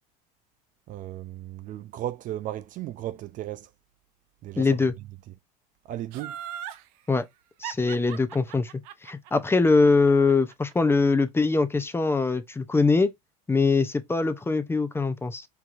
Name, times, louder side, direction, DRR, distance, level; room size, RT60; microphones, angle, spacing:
voice 1, 0.9-3.7 4.4-4.8 5.9-6.4, right 13 dB, 40° right, 0.4 m, -35 dB
voice 2, 4.6-4.9 7.1-7.2 7.6-8.7 9.0-13.1 13.5-15.5, left 3 dB, 10° left, 0.5 m, -22 dB
Laughter, 6.1-6.8 7.6-10.7 11.1-11.2, right 10 dB, 70° right, 0.7 m, -38 dB
4.5 x 3.7 x 2.5 m
supercardioid pair, 105°, 21 cm